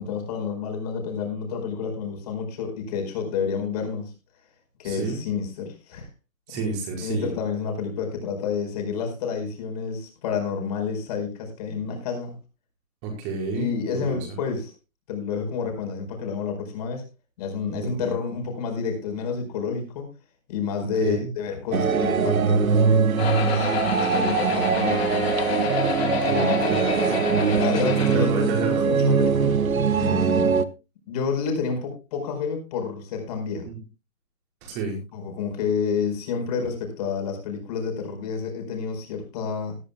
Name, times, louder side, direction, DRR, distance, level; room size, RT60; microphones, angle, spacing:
voice 1, 0.0-4.1 4.8-6.1 6.5-6.7 7.0-12.3 13.5-14.7 15.1-17.0 17.4-20.1 20.5-22.7 23.4-25.3 26.2-26.7 27.6-29.6 29.9-30.6 31.1-33.7 35.1-39.8, left 5 dB, 30° left, 3 dB, 4.7 m, -29 dB
voice 2, 4.8-5.2 6.5-7.3 13.0-14.2 17.7-18.1 21.0-21.3 26.0-27.1 28.1-28.8 33.6-33.7 34.6-35.0, right 4 dB, 20° right, 1 dB, 5.1 m, -30 dB
sound 1, 21.7-30.6, right 6 dB, 90° right, 1.3 m, -22 dB
sound 2, 23.2-28.2, left 7 dB, 50° left, 2.0 m, -28 dB
19.5 x 12.5 x 2.3 m, 0.28 s
hypercardioid pair, 160°, 40 cm